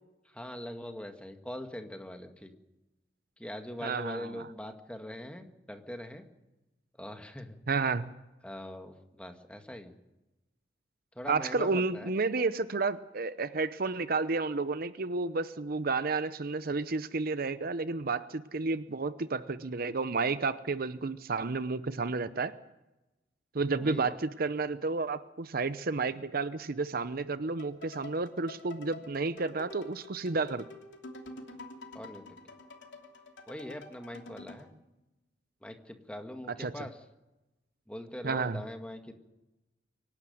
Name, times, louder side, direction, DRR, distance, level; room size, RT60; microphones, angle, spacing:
voice 1, 0.3-2.5 3.4-6.2 7.0-7.6 8.4-9.9 11.2-12.1 23.7-24.1 31.9-32.2 33.5-34.7 35.6-37.0 37.9-39.1, left 1 dB, 5° left, 5 dB, 1.8 m, -42 dB
voice 2, 3.8-4.5 7.7-8.1 11.3-22.5 23.5-30.6 36.6-36.7 38.2-38.6, right 3 dB, 55° right, 13 dB, 0.8 m, -31 dB
sound 1, 27.6-34.7, left 2 dB, 85° left, 3.0 m, -48 dB
24.5 x 12.0 x 9.3 m, 0.98 s
head